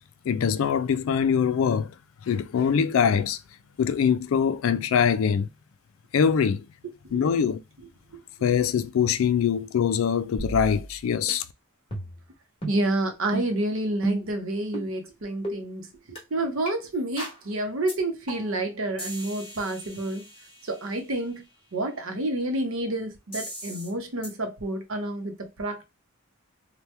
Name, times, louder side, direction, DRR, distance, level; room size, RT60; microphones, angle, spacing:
voice 1, 0.3-1.9 2.3-3.4 3.8-5.5 6.1-6.6 7.1-7.6 8.4-11.4, left 7 dB, 65° left, 0.3 m, -23 dB
voice 2, 6.8-7.3 8.1-8.2 12.7-20.3 20.6-21.4 21.7-25.8, right 1 dB, 65° right, 0.7 m, -29 dB
sound 1, 10.4-11.0 11.3-11.4 11.9-12.3 12.6-12.8 13.3-13.5 14.0-14.3 14.7-14.9 15.4-15.6 16.2-16.3 16.7-16.8 17.2-17.4 17.9-18.0 18.3-18.6 19.0-20.8 23.3-23.9 24.2-24.3, right 1 dB, 25° left, 1.2 m, -35 dB
2.9 x 2.2 x 3.2 m
head